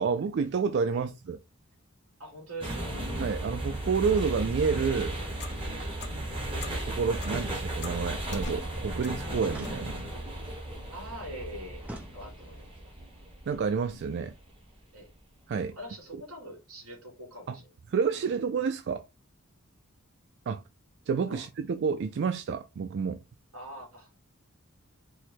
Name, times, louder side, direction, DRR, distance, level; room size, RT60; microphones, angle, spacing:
voice 1, 0.0-1.4 3.2-5.2 6.8-10.0 13.5-14.3 15.5-15.8 17.5-17.6 17.9-19.0 20.5-20.6 21.1-23.2, right 5 dB, 55° right, 0.3 m, -29 dB
voice 2, 2.2-3.1 10.9-11.8 12.1-12.9 14.9-15.1 15.7-17.7 21.3-21.4 23.5-24.1, right 1 dB, 80° right, 2.6 m, -43 dB
sound 1, 2.6-14.7, right 1 dB, 25° right, 1.3 m, -35 dB
Clock, 5.2-9.9, left 2 dB, 55° left, 0.9 m, -44 dB
sound 2, 7.3-8.0 9.5-10.4 11.8-12.7, right 1 dB, 5° right, 0.6 m, -45 dB
4.6 x 2.2 x 4.1 m
head